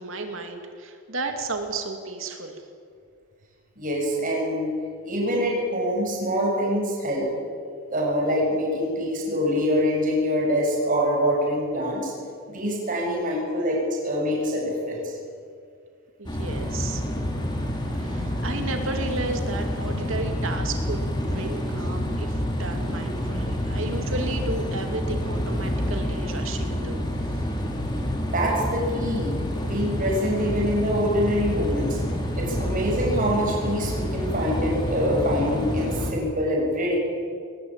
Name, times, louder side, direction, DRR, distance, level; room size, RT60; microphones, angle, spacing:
voice 1, 0.0-2.6 16.2-17.0 17.9-27.1, right 2 dB, 70° right, 4 dB, 2.5 m, -33 dB
voice 2, 3.8-4.7 5.1-7.3 7.9-12.1 12.5-15.1 28.3-29.3 29.6-32.0 32.3-37.0, equal, 40° right, -2 dB, 7.1 m, -25 dB
sound 1, 16.3-36.1, equal, 20° left, 3.4 m, -28 dB
21.5 x 20.0 x 8.9 m, 2.2 s
head